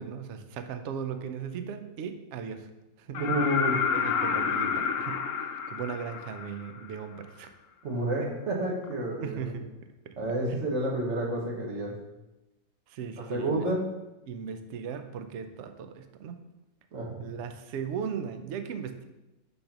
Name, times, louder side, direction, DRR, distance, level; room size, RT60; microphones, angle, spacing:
voice 1, 0.0-2.7 3.0-3.3 3.9-7.5 9.2-9.7 10.1-10.2 12.9-13.7 14.3-16.4 17.2-19.0, right 7 dB, 65° right, 8 dB, 0.7 m, -37 dB
sound 1, 3.1-6.9 8.8-8.9, left 6 dB, 80° left, 0.5 m, -29 dB
voice 2, 3.2-3.8 7.8-9.5 10.2-11.9 13.3-13.9 16.9-17.3, right 1 dB, 50° right, -2 dB, 1.4 m, -29 dB
5.1 x 4.1 x 5.8 m, 1.0 s
omnidirectional pair, 1.6 m